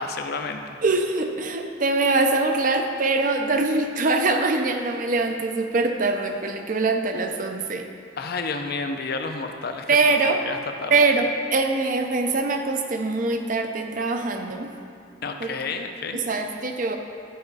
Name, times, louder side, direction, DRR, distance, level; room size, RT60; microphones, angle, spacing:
voice 1, 0.0-0.8 8.2-9.9 10.4-10.9 15.2-16.2, left 4 dB, 55° left, 6 dB, 0.5 m, -30 dB
voice 2, 0.8-7.9 9.9-10.4 10.9-14.7 15.4-15.5 16.1-17.0, right 3 dB, 45° right, 5 dB, 0.5 m, -23 dB
11.0 x 4.9 x 4.0 m, 2.3 s
head